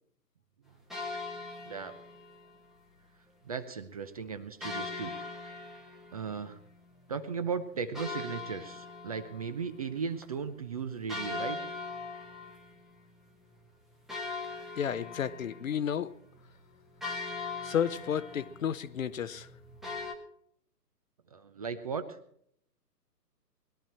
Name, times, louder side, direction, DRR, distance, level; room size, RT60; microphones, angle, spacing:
sound 1, 0.9-2.6 4.6-7.0 7.9-10.0 10.2-10.3 11.1-13.1 13.5-13.6 14.1-20.1, left 3 dB, ahead, 0.9 m, -41 dB
voice 1, 3.5-5.2 6.1-6.6 7.1-11.6 21.3-22.0, right 6 dB, 25° right, 0.6 m, -36 dB
voice 2, 14.8-16.1 17.6-19.5, left 8 dB, 55° left, 0.9 m, -32 dB
21.0 x 12.0 x 4.4 m
hypercardioid pair, 145°, 49 cm